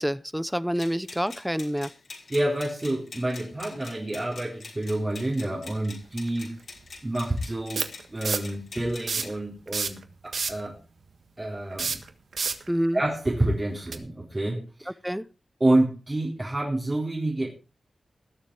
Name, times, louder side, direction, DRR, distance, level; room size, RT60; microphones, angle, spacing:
voice 1, 0.0-1.9 12.7-13.0 15.0-15.2, equal, 5° right, 16 dB, 0.7 m, -27 dB
sound 1, 0.8-9.4, left 4 dB, 70° left, 6.0 m, -45 dB
voice 2, 2.3-6.5 7.0-10.0 10.2-10.8 11.4-12.0 12.4-12.6 12.9-14.9 15.6-17.5, right 1 dB, 25° right, -4 dB, 4.0 m, -28 dB
sound 2, 6.3-6.4 7.8-8.5 9.0-9.4 9.7-10.7 11.7-12.7 13.9-14.0, right 5 dB, 75° right, 1.5 m, -28 dB
19.5 x 7.4 x 4.8 m, 0.32 s
wide cardioid pair, 110°, 0 cm